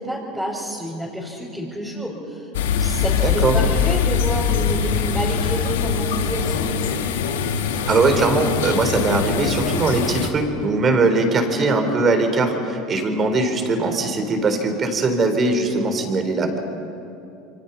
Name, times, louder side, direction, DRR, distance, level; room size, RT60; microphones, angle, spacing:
voice 1, 0.0-2.5 2.8-6.7, equal, ahead, -6 dB, 5.2 m, -29 dB
sound 1, 2.5-10.3, left 6 dB, 90° left, 1.6 m, -22 dB
voice 2, 3.2-3.5 7.9-16.6, right 3 dB, 35° right, 6 dB, 4.1 m, -20 dB
28.0 x 24.0 x 5.9 m, 2.9 s
supercardioid pair, 100°, 0 cm